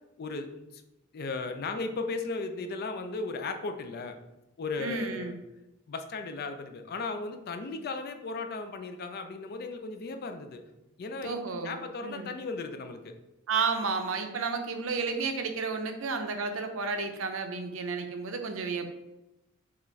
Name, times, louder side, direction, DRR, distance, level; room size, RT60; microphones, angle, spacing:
voice 1, 1.1-4.2 4.6-5.3 5.9-10.6 11.0-11.3 11.6-13.1, left 3 dB, 50° left, 7 dB, 0.4 m, -36 dB
voice 2, 4.8-5.3 11.2-12.3 13.5-18.9, right 4 dB, 70° right, 6 dB, 0.6 m, -32 dB
5.7 x 2.5 x 3.1 m, 0.95 s
head